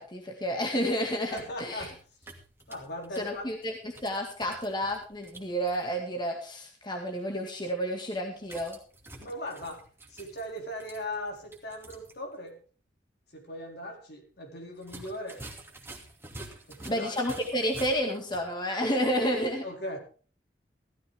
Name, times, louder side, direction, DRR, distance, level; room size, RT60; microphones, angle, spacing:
voice 1, 0.0-1.9 3.2-3.7 4.0-8.8 16.9-19.6, equal, 25° left, 2 dB, 2.1 m, -30 dB
sound 1, 1.1-5.8 8.4-12.2 12.5-12.6 14.8-18.5, right 2 dB, 15° right, 2.5 m, -48 dB
voice 2, 1.3-2.3 2.7-3.5 9.2-12.6 13.3-15.4 16.7-17.1 19.6-20.0, left 1 dB, 65° left, 2 dB, 4.0 m, -39 dB
15.5 x 13.5 x 3.6 m, 0.39 s
head